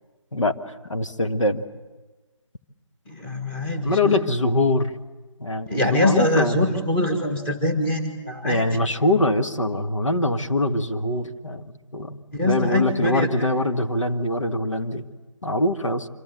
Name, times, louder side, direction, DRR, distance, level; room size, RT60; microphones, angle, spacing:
voice 1, 0.9-1.6 3.8-5.0 5.4-6.7 8.4-15.0 15.4-16.1, left 1 dB, 75° left, 6 dB, 1.8 m, -23 dB
voice 2, 3.1-4.2 5.6-8.8 12.3-13.3, left 1 dB, 10° left, 3 dB, 1.6 m, -24 dB
26.0 x 25.5 x 7.9 m, 1.2 s
figure-of-eight pair, 160°, 16 cm